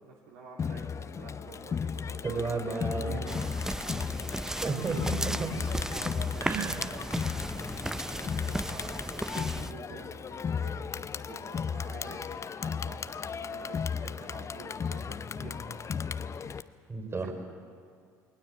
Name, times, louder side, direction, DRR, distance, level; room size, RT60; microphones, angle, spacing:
voice 1, 0.0-3.5 5.5-15.8 17.2-17.3, right 4 dB, 70° right, -2 dB, 2.8 m, -48 dB
Crowd, 0.6-16.6, left 6 dB, 30° left, 0.8 m, -35 dB
voice 2, 2.2-3.2 4.6-5.5 6.4-6.8 16.9-17.3, right 4 dB, 25° right, 5 dB, 4.7 m, -32 dB
sound 1, 3.3-9.7, right 1 dB, 5° right, 0.6 m, -35 dB
20.5 x 19.5 x 8.1 m, 2.2 s
figure-of-eight pair, 60°, 10 cm